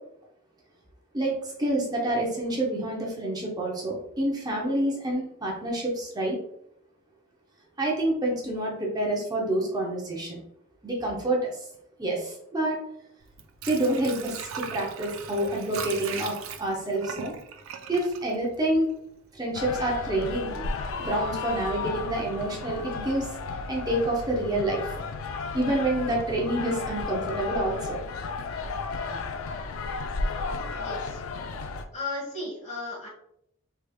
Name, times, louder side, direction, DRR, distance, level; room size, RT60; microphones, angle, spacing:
voice 1, 1.1-6.4 7.8-10.4 10.8-11.6 12.0-12.8 13.7-17.3 17.9-18.9 19.3-20.6 21.0-23.3 23.7-24.9 25.5-28.0, right 1 dB, 20° right, -2 dB, 0.6 m, -28 dB
Water / Sink (filling or washing), 13.2-19.1 19.5-19.6, right 6 dB, 65° right, 0.4 m, -39 dB
sound 1, 19.5-31.8, left 4 dB, 70° left, 0.3 m, -33 dB
voice 2, 30.8-31.2 31.9-33.1, left 2 dB, 35° left, -4 dB, 1.3 m, -35 dB
3.3 x 3.1 x 2.3 m, 0.73 s
head